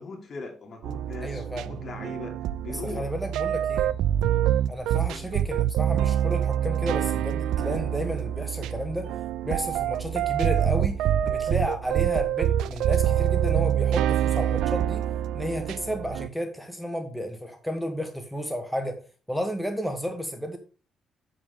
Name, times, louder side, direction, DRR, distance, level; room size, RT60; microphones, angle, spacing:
voice 1, 0.0-3.1 5.1-5.3, left 4 dB, 50° left, 2.8 m, -40 dB
sound 1, 0.8-16.3, right 11 dB, 85° right, 0.3 m, -26 dB
voice 2, 1.2-1.8 2.7-3.9 4.7-9.1 9.4-15.1 15.3-19.0 19.3-20.6, equal, ahead, 1.3 m, -32 dB
7.8 x 7.2 x 3.8 m
cardioid pair, 90°, 0 cm